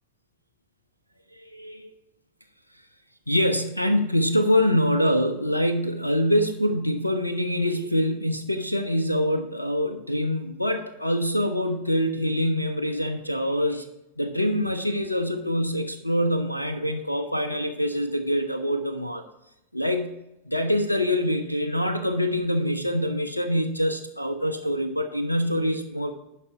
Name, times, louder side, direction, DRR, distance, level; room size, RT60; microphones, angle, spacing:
voice 1, 1.3-1.9 3.3-13.9 14.2-19.2 19.7-20.1 20.4-26.1, equal, 85° left, 7 dB, 0.6 m, -25 dB
11.0 x 5.1 x 4.6 m, 0.88 s
figure-of-eight pair, 90°, 0 cm